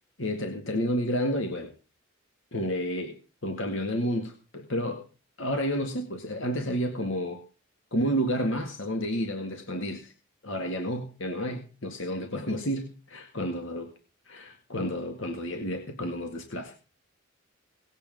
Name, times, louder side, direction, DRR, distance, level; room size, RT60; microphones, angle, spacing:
voice 1, 0.2-1.7 2.5-3.2 3.4-5.0 5.4-7.4 7.9-10.1 10.4-13.9 14.3-16.8, equal, 65° left, 5 dB, 2.0 m, -30 dB
18.5 x 8.8 x 5.3 m, 0.34 s
head